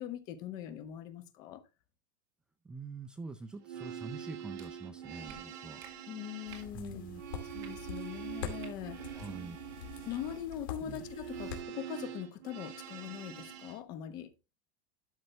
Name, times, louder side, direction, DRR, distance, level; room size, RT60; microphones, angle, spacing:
voice 1, 0.0-1.6 6.1-7.0 7.5-9.2 10.0-14.3, left 10 dB, 40° left, 1.2 m, -42 dB
voice 2, 2.6-5.8 6.7-7.2 9.1-9.6 10.9-11.0, right 4 dB, 10° right, 0.4 m, -45 dB
sound 1, 3.5-13.8, right 9 dB, 55° right, 2.0 m, -45 dB
sound 2, 4.6-4.7 5.3-5.4 5.8-5.9 6.5-6.7 7.6-7.7 8.6-8.7 9.1-9.3, right 8 dB, 35° right, 2.0 m, -52 dB
sound 3, 6.5-11.6, left 8 dB, 85° left, 2.5 m, -45 dB
12.5 x 5.3 x 3.3 m
supercardioid pair, 165°, 11 cm